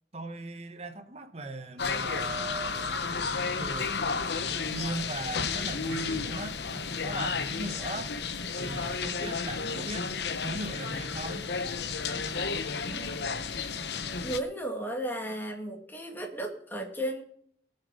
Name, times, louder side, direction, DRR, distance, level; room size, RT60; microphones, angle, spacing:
voice 1, 0.1-3.0 3.3-4.0 4.5-8.1 8.6-10.1 10.4-11.5, right 2 dB, 35° right, 1.2 m, -39 dB
sound 1, 1.8-14.4, left 5 dB, 65° left, 0.9 m, -32 dB
voice 2, 12.9-13.5 14.2-17.2, right 1 dB, 10° left, 2.2 m, -35 dB
18.5 x 6.8 x 5.2 m
head